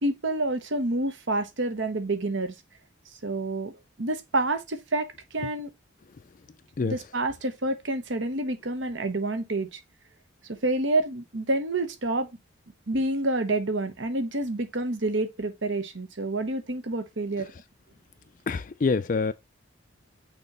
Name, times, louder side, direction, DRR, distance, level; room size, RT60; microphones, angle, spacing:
voice 1, 0.0-2.5 3.2-5.7 6.8-9.8 10.5-12.3 12.9-17.5, right 2 dB, 70° right, 1.2 m, -28 dB
voice 2, 18.5-19.3, left 4 dB, 40° left, 0.3 m, -25 dB
6.4 x 3.0 x 5.4 m
head